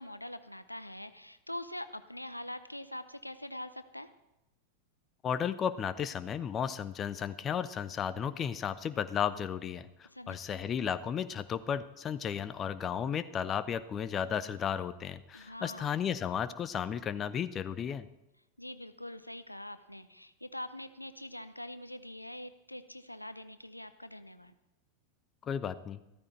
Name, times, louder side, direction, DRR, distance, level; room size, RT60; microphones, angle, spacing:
voice 1, 0.0-4.1 10.0-10.7 15.3-15.9 18.6-24.6, left 1 dB, 85° left, 12 dB, 0.6 m, -44 dB
voice 2, 5.2-18.1 25.5-26.0, left 8 dB, 25° left, 14 dB, 0.6 m, -34 dB
14.0 x 13.5 x 4.5 m, 0.92 s
figure-of-eight pair, 90°, 0 cm